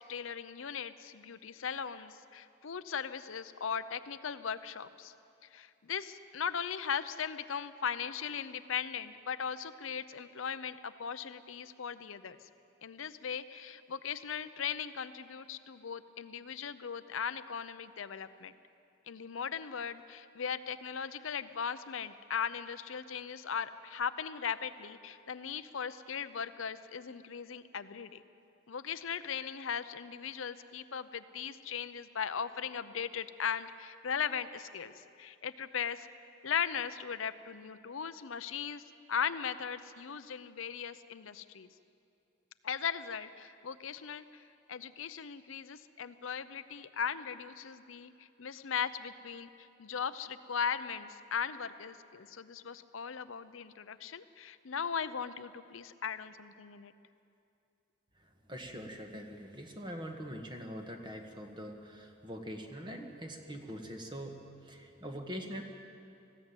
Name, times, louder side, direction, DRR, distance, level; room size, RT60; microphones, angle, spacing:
voice 1, 0.1-5.1 5.5-12.4 12.8-18.5 19.1-28.2 28.7-34.9 35.2-36.1 36.4-38.8 39.1-41.7 42.6-44.4 44.7-48.1 48.4-49.5 49.8-56.9, left 7 dB, 80° left, 12 dB, 0.7 m, -38 dB
voice 2, 58.2-65.6, equal, 25° right, 4 dB, 1.6 m, -43 dB
19.5 x 15.0 x 9.1 m, 2.6 s
head